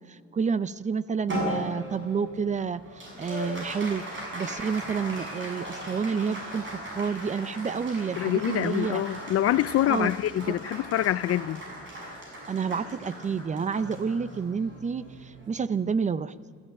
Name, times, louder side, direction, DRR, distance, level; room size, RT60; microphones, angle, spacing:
voice 1, 0.1-2.8 3.2-4.0 4.3-9.0 9.9-10.1 10.5-10.6 12.5-16.3, right 6 dB, 25° right, 0.5 m, -29 dB
Applause, 1.3-15.9, equal, 40° right, 7.0 m, -38 dB
voice 2, 8.2-11.6, left 13 dB, 50° left, 0.5 m, -25 dB
27.0 x 13.5 x 8.8 m
cardioid pair, 150°, 30 cm